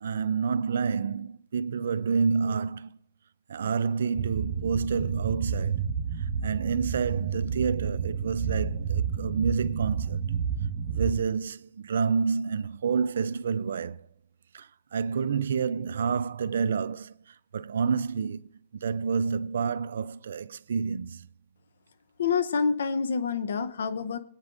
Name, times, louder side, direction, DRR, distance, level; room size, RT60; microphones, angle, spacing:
voice 1, 0.0-2.9 3.5-5.8 6.4-10.2 10.9-14.0 14.5-17.1 17.5-18.5 18.8-21.3, right 5 dB, 75° right, 0.4 m, -29 dB
sound 1, 4.1-11.2, right 6 dB, 60° right, 1.6 m, -30 dB
voice 2, 22.2-24.2, left 5 dB, 80° left, 0.7 m, -27 dB
20.5 x 8.9 x 2.5 m
hypercardioid pair, 140°, 0 cm